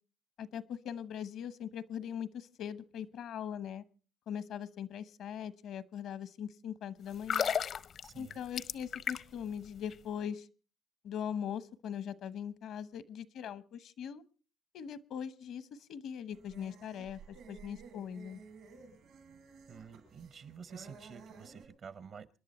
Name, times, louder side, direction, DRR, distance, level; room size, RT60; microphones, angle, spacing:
voice 1, 0.4-3.8 4.3-7.5 8.1-10.5 11.0-14.2 14.7-18.4, left 8 dB, 80° left, 16 dB, 1.0 m, -41 dB
sound 1, 7.1-9.5 9.8-9.9, left 7 dB, 60° left, 0.7 m, -34 dB
voice 2, 8.0-8.4 19.7-22.4, right 6 dB, 60° right, 15 dB, 1.1 m, -50 dB
sound 2, 16.3-21.7, right 4 dB, 85° right, 7.2 m, -54 dB
28.0 x 11.0 x 4.3 m, 0.38 s
cardioid pair, 90°, 0 cm